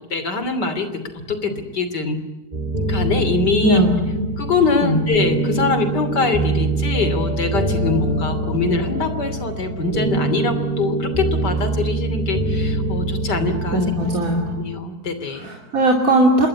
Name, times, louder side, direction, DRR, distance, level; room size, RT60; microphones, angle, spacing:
voice 1, 0.1-1.0 1.3-2.2 2.9-3.8 4.4-13.8 14.6-15.5, left 4 dB, 80° left, 11 dB, 3.6 m, -23 dB
sound 1, 2.5-14.6, right 2 dB, 25° right, 3.3 m, -24 dB
voice 2, 3.6-4.2 4.8-5.0 13.7-14.6 15.3-16.5, right 1 dB, 55° right, 1 dB, 3.3 m, -18 dB
26.5 x 21.5 x 9.7 m, 1.1 s
omnidirectional pair, 1.8 m